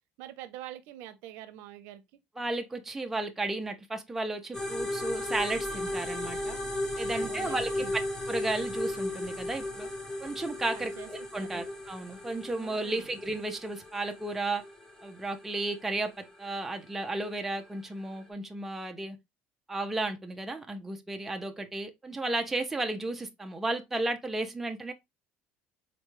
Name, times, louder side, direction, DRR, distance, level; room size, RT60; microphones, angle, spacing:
voice 1, 0.2-2.0 7.2-8.0 10.7-11.1 11.4-11.7 12.6-13.1, right 12 dB, 75° right, 0.6 m, -45 dB
voice 2, 2.4-6.6 7.0-7.9 8.3-9.9 10.2-14.6 15.0-19.2 19.7-24.9, right 2 dB, 5° right, 0.4 m, -33 dB
sound 1, 4.5-18.3, left 1 dB, 15° left, 0.9 m, -36 dB
4.1 x 2.2 x 3.0 m
cardioid pair, 155°, 4 cm